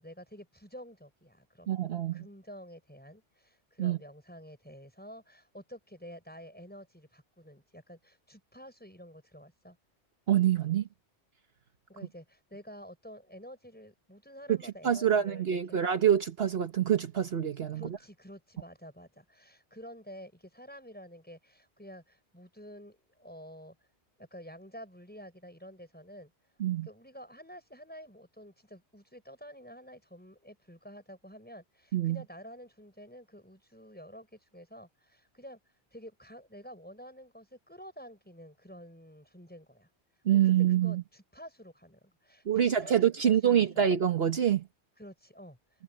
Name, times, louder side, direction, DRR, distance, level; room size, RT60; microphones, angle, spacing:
voice 1, 0.0-1.7 2.1-9.8 11.9-15.8 17.7-23.8 24.2-26.3 26.8-35.6 35.9-39.9 40.3-43.9 45.0-45.6, equal, 10° left, 6.1 m, -50 dB
voice 2, 1.7-2.2 3.8-4.0 10.3-10.9 14.5-14.6 14.8-18.0 26.6-26.9 31.9-32.2 40.2-41.0 42.5-44.6, right 9 dB, 60° right, 1.3 m, -26 dB
omnidirectional pair, 1.2 m